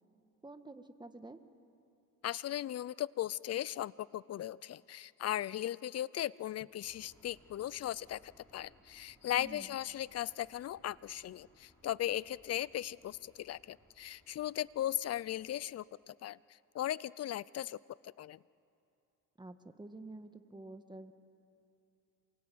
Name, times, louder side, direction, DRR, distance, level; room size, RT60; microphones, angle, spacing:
voice 1, 0.4-1.4 9.4-9.8 19.4-21.1, right 2 dB, 15° right, 8 dB, 1.8 m, -49 dB
voice 2, 2.2-16.4 16.7-18.4, left 12 dB, 55° left, 22 dB, 0.6 m, -38 dB
sound 1, 6.8-15.6, equal, 10° left, 6.8 m, -67 dB
27.0 x 23.0 x 9.4 m, 2.7 s
cardioid pair, 90°, 30 cm